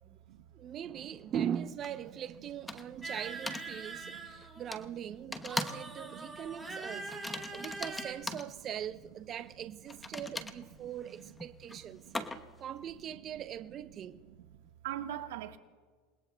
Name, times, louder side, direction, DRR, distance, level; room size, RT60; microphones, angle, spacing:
voice 1, 0.5-14.2, right 9 dB, 35° right, 0.6 m, -41 dB
sound 1, 1.8-1.9 2.7-3.0 3.5-3.7 4.7-4.8 5.3-5.9 6.2-6.4 7.1-8.5 9.9-12.6, left 2 dB, 10° left, 1.0 m, -40 dB
voice 2, 2.9-3.2 3.8-4.3 5.3-5.4 6.1-7.0 7.5-7.6 11.7-11.8 12.1-12.4 14.4-14.5 14.8-15.6, right 12 dB, 85° right, 1.3 m, -44 dB
sound 2, 3.0-4.8 5.5-8.1, right 3 dB, 5° right, 3.5 m, -43 dB
28.5 x 20.0 x 2.2 m
supercardioid pair, 125°, 0 cm